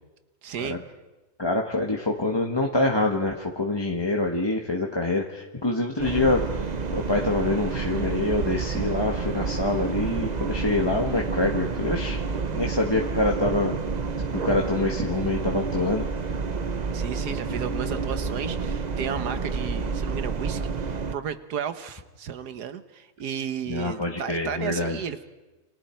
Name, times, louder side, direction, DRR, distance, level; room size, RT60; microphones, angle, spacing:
voice 1, 0.4-0.8 16.9-25.2, right 8 dB, 80° right, 11 dB, 1.6 m, -33 dB
voice 2, 1.4-12.2 12.5-13.8 14.4-16.0 23.7-25.0, left 2 dB, 15° left, 0 dB, 1.3 m, -26 dB
sound 1, 6.0-21.1, right 4 dB, 35° right, 0.7 m, -29 dB
29.5 x 26.0 x 4.5 m, 1.1 s
omnidirectional pair, 1.7 m